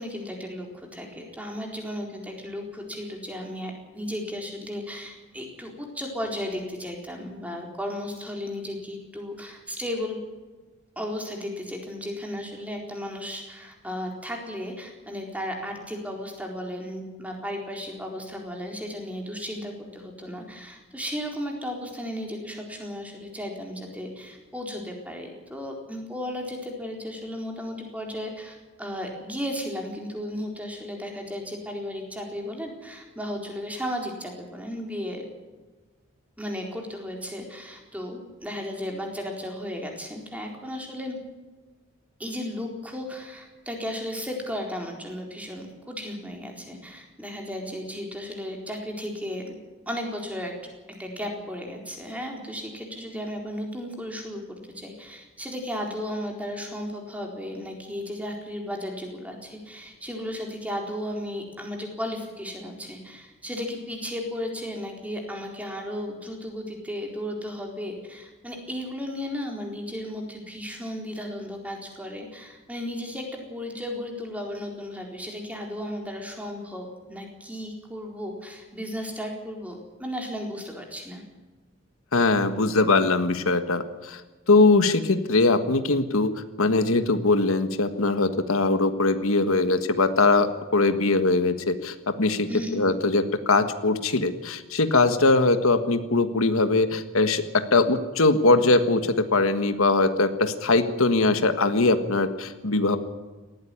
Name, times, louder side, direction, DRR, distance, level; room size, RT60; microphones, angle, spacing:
voice 1, 0.0-10.2 11.0-35.3 36.4-41.2 42.2-49.5 49.9-50.5 51.0-73.2 73.5-81.2 92.5-92.8, equal, 5° right, 1 dB, 4.2 m, -35 dB
voice 2, 82.1-84.2 84.5-86.3 86.6-103.0, left 3 dB, 80° left, 9 dB, 1.5 m, -21 dB
19.0 x 15.0 x 9.8 m, 1.3 s
head